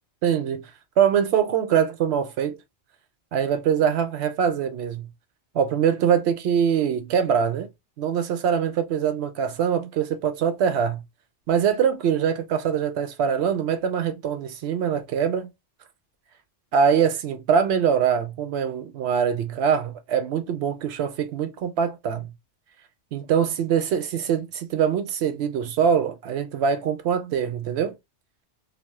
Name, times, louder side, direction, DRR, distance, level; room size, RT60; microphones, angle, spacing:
voice 1, 0.2-0.7 1.0-2.6 3.3-5.1 5.5-7.7 8.0-11.0 11.5-15.5 16.7-22.3 23.1-27.9, right 7 dB, 70° right, 0.8 m, -23 dB
2.4 x 2.1 x 3.4 m
omnidirectional pair, 1.2 m